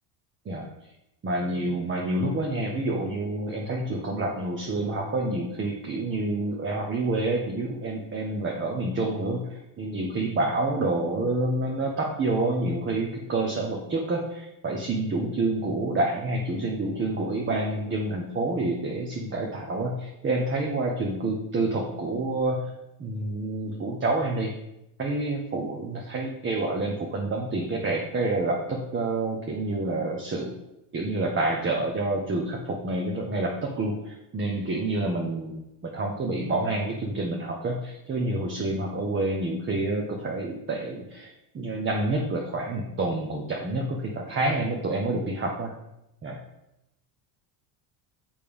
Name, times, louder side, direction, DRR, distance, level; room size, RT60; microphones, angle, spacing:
voice 1, 1.2-22.6 23.0-24.5 25.0-30.5 30.9-41.3 41.5-45.7 46.2-46.4, right 2 dB, 25° right, 0 dB, 1.1 m, -28 dB
6.7 x 5.4 x 5.2 m, 0.87 s
cardioid pair, 125°, 45 cm